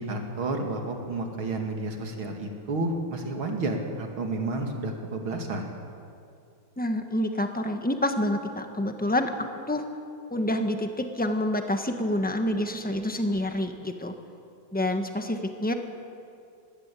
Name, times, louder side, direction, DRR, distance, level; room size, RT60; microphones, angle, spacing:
voice 1, 0.0-5.7, right 2 dB, 75° right, 3 dB, 3.1 m, -31 dB
voice 2, 6.8-9.3 9.7-9.8 10.3-14.1 14.7-15.7, left 1 dB, 5° left, 6 dB, 0.9 m, -27 dB
21.5 x 16.5 x 8.4 m, 2.5 s
omnidirectional pair, 2.3 m